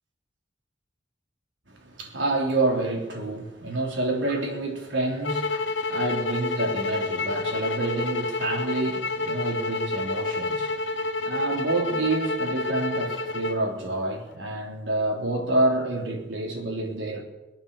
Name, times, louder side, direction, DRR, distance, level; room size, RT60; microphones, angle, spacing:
voice 1, 1.7-17.2, right 2 dB, 85° right, 3.7 m, -28 dB
sound 1, 5.2-13.6, left 3 dB, 90° left, 1.1 m, -29 dB
23.0 x 8.8 x 7.1 m
head